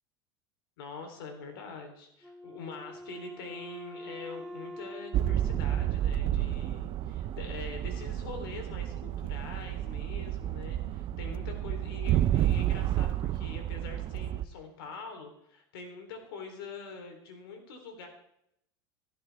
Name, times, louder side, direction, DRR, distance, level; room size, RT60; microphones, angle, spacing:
voice 1, 0.8-18.1, left 4 dB, 75° left, 5 dB, 3.5 m, -44 dB
Wind instrument woodwind instrument, 2.2-6.7, left 1 dB, 5° right, 1.7 m, -45 dB
sound 1, 5.1-14.4, right 12 dB, 45° right, 0.7 m, -30 dB
17.0 x 12.0 x 3.5 m, 0.77 s
hypercardioid pair, 90°, 12 cm